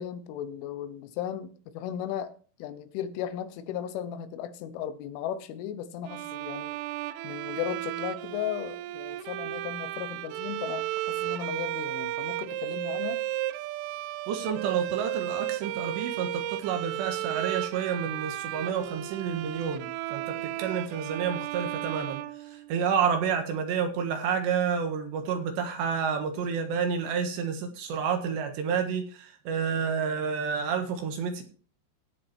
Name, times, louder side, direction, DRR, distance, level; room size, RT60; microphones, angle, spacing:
voice 1, 0.0-2.3 2.6-6.8 7.2-13.2, left 10 dB, 80° left, 3.3 m, -36 dB
Bowed string instrument, 6.1-23.1, right 15 dB, 90° right, 3.3 m, -34 dB
voice 2, 14.3-22.2 22.5-31.4, right 6 dB, 70° right, 3.5 m, -29 dB
17.0 x 6.2 x 4.3 m
omnidirectional pair, 5.7 m